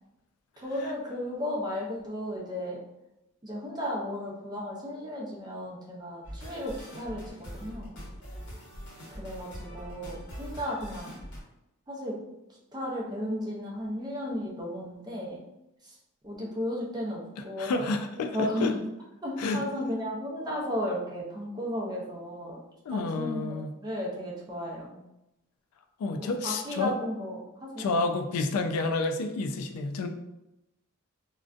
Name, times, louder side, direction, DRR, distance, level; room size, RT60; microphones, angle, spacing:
voice 1, 0.6-2.8 3.4-8.0 9.2-11.2 11.9-12.2 12.5-15.4 15.8-16.0 16.2-17.9 18.2-18.8 19.2-22.6 22.9-25.0 26.2-27.9, equal, 20° right, -3 dB, 0.5 m, -34 dB
sound 1, 6.2-11.4, equal, 55° left, 0.8 m, -43 dB
voice 2, 17.6-18.7 19.4-19.6 22.9-23.7 26.0-26.9 27.8-30.1, left 3 dB, 80° left, 6 dB, 0.3 m, -29 dB
2.5 x 2.2 x 2.3 m, 0.91 s
head